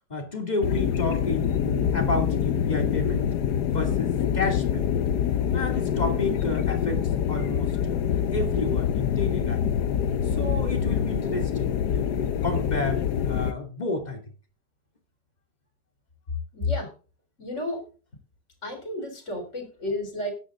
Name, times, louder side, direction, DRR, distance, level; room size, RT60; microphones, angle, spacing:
voice 1, 0.1-3.3 3.7-4.9 5.5-8.0 8.3-9.7 10.3-14.2, left 2 dB, 25° left, 3 dB, 2.9 m, -31 dB
sound 1, 0.6-13.5, left 8 dB, 90° left, 1.4 m, -25 dB
voice 2, 16.5-16.9 17.4-17.8 18.6-20.3, left 2 dB, 45° left, 4 dB, 4.2 m, -31 dB
14.0 x 10.0 x 3.8 m, 0.37 s
omnidirectional pair, 1.7 m